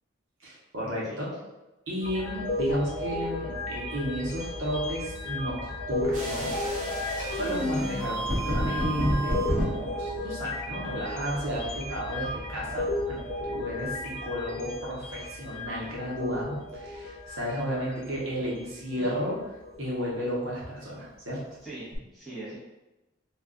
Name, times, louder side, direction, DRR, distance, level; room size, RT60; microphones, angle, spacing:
voice 1, 0.4-1.4 1.9-6.6 7.2-19.5 19.8-21.4, equal, 70° right, -5 dB, 0.8 m, -33 dB
sound 1, 2.0-19.2 19.6-19.9 21.9-22.0, left 1 dB, 50° left, 0.4 m, -34 dB
sound 2, 6.1-9.7, equal, 35° right, 0.9 m, -29 dB
voice 2, 21.6-22.6, right 2 dB, ahead, -10 dB, 0.9 m, -41 dB
2.3 x 2.3 x 3.7 m, 1.0 s
head